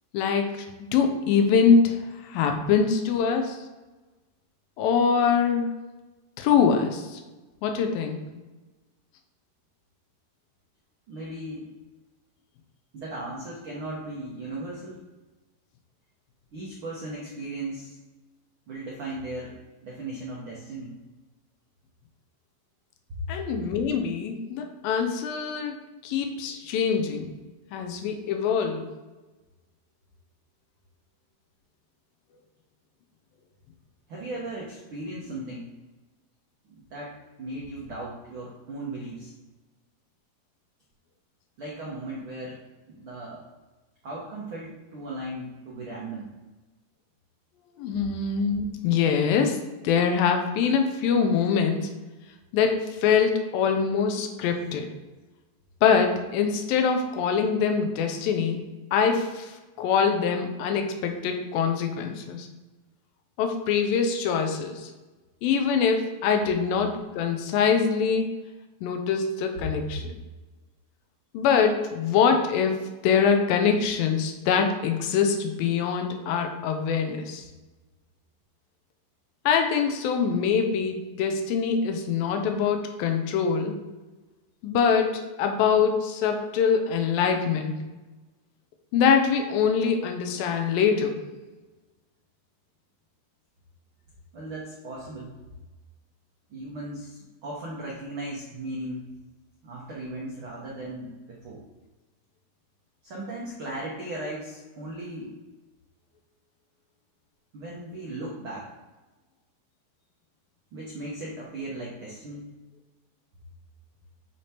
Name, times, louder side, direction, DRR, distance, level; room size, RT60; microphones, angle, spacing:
voice 1, 0.1-2.0 2.3-3.6 4.8-5.7 6.4-7.2 7.6-8.2 23.3-25.8 26.0-27.3 27.7-28.9 47.8-49.6 49.8-51.9 52.5-54.9 55.8-58.6 58.9-59.5 59.8-62.5 63.4-64.9 65.4-68.3 68.8-70.2 71.3-77.4 79.5-83.8 84.6-87.8 88.9-91.2, left 6 dB, 85° left, 5 dB, 2.5 m, -24 dB
voice 2, 11.1-11.7 12.9-15.0 16.5-18.0 18.7-19.5 19.8-21.0 23.1-23.2 26.5-26.6 34.1-35.7 36.7-39.3 41.6-42.6 42.9-43.4 44.0-46.3 94.3-95.3 96.5-99.0 99.6-101.6 103.0-105.3 107.5-108.7 110.7-112.4, right 2 dB, 80° right, -5 dB, 1.2 m, -37 dB
8.0 x 3.5 x 4.3 m, 1.2 s
omnidirectional pair, 4.1 m